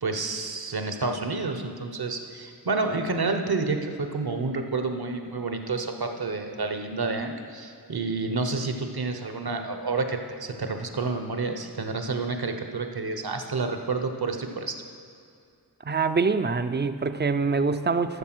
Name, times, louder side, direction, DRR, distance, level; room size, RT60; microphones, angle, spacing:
voice 1, 0.0-14.8, right 3 dB, 65° right, 5 dB, 1.1 m, -29 dB
voice 2, 15.8-18.2, right 4 dB, 25° right, 10 dB, 0.5 m, -25 dB
13.0 x 6.9 x 6.1 m, 2.4 s
wide cardioid pair, 70°, 41 cm